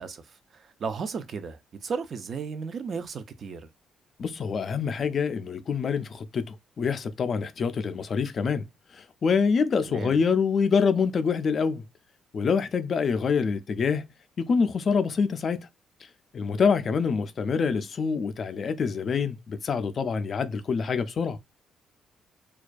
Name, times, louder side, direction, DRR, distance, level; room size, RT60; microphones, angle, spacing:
voice 1, 0.0-3.7 9.8-10.2, right 5 dB, 55° right, 0.3 m, -35 dB
voice 2, 4.2-8.7 8.9-11.8 12.3-14.1 14.4-15.7 16.3-21.4, left 5 dB, 50° left, 0.3 m, -26 dB
2.3 x 2.2 x 2.4 m
cardioid pair, 90°, 0 cm